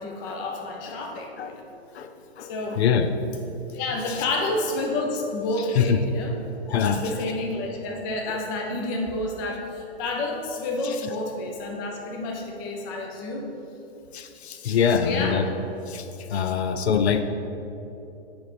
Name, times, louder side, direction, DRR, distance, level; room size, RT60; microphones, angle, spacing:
voice 1, 0.0-1.6 2.4-2.8 3.7-6.4 6.8-13.5 14.7-15.4 16.3-16.5, left 2 dB, 20° left, 1 dB, 0.5 m, -30 dB
voice 2, 2.4-3.1 4.1-4.2 5.7-6.0 6.7-7.0 8.3-8.4 10.8-11.0 14.1-15.5 15.9-17.2, left 7 dB, 80° left, 8 dB, 0.6 m, -24 dB
7.5 x 3.3 x 5.1 m, 2.9 s
hypercardioid pair, 155°, 32 cm